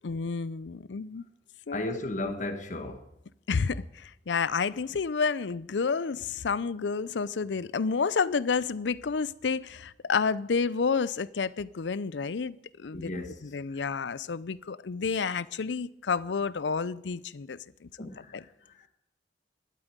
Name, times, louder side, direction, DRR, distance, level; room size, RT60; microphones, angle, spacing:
voice 1, 0.0-1.2 1.7-1.9 3.5-13.1 13.4-18.4, left 5 dB, 85° left, 0.5 m, -30 dB
voice 2, 1.7-3.0 12.9-13.4 13.7-13.9 18.0-18.9, left 2 dB, 45° left, 1.5 m, -36 dB
12.0 x 9.0 x 9.4 m
head